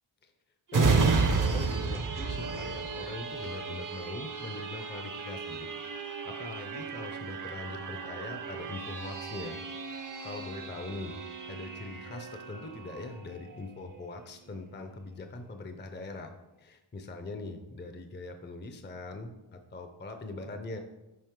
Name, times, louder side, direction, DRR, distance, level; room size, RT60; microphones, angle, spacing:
voice 1, 0.7-5.7 6.0-9.6 9.9-11.2 11.5-16.3 16.6-20.8, left 2 dB, 25° left, 6 dB, 0.5 m, -42 dB
sound 1, 0.7-14.0 14.5-14.6, right 4 dB, 40° right, 0.7 m, -33 dB
7.6 x 5.0 x 3.6 m, 1.0 s
wide cardioid pair, 90°, 48 cm